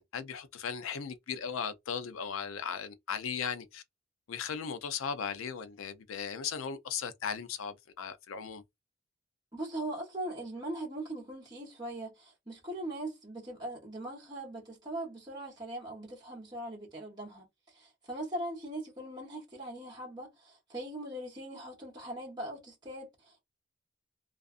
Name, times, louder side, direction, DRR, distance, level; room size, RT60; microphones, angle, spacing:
voice 1, 0.0-3.8 4.3-8.6, left 6 dB, 90° left, 0.4 m, -37 dB
voice 2, 9.5-23.4, right 1 dB, 20° right, 0.9 m, -40 dB
2.4 x 2.4 x 2.4 m
head